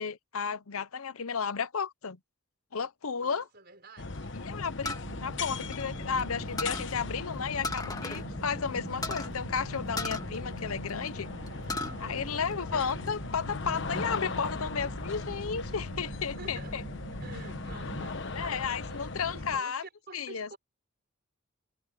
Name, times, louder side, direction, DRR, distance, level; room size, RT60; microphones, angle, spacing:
voice 1, 0.0-2.2 2.7-3.5 4.3-11.3 12.0-16.8 18.3-19.8 20.1-20.5, left 6 dB, 80° left, 0.8 m, -33 dB
voice 2, 3.2-4.3 11.8-12.2 16.2-16.8 17.2-20.6, right 3 dB, 45° right, 5.9 m, -50 dB
sound 1, 4.0-19.6, left 3 dB, 55° left, 1.2 m, -38 dB
sound 2, 4.8-6.2 6.6-6.9 7.6-8.3 8.5-8.6 9.0-9.3 10.0-11.1 11.5-12.0 12.4-13.1, left 2 dB, 15° left, 1.6 m, -36 dB
sound 3, 5.0-18.1, right 2 dB, 75° right, 1.6 m, -45 dB
head